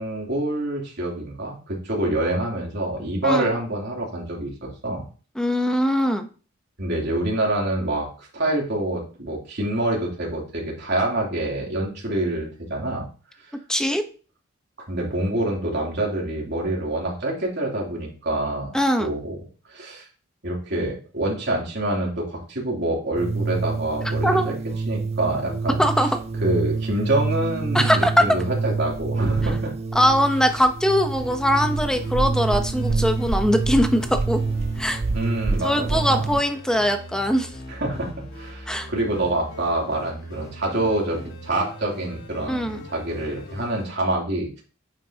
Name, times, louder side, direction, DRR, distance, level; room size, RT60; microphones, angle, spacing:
voice 1, 0.0-5.0 6.8-13.1 14.9-19.4 19.7-20.0 20.4-24.5 24.9-25.8 26.4-29.7 35.1-36.3 37.7-38.1 38.3-44.6, right 1 dB, 60° right, -3 dB, 3.2 m, -26 dB
voice 2, 5.4-6.3 13.7-14.1 18.7-19.1 24.2-24.5 25.8-26.2 27.7-28.3 29.9-34.4 34.8-35.0 35.6-37.5 38.7-38.9 42.5-42.8, equal, 5° left, 6 dB, 0.9 m, -21 dB
sound 1, 23.2-36.4, right 4 dB, 30° right, 0.4 m, -26 dB
sound 2, 31.2-43.9, equal, 90° left, 2.9 m, -40 dB
9.3 x 7.5 x 2.9 m, 0.38 s
head